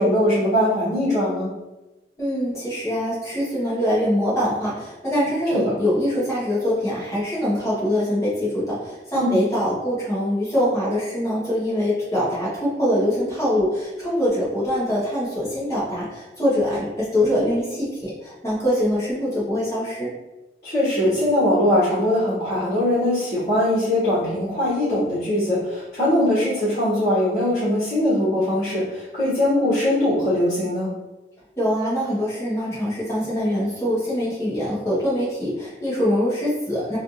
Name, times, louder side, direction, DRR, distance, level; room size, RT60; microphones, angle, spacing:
voice 1, 0.0-1.5 5.5-5.7 9.1-9.5 20.6-30.9, left 1 dB, 40° left, -12 dB, 1.4 m, -21 dB
voice 2, 2.2-20.1 31.6-37.0, equal, 15° left, -8 dB, 1.1 m, -23 dB
3.3 x 2.5 x 2.7 m, 1.0 s
head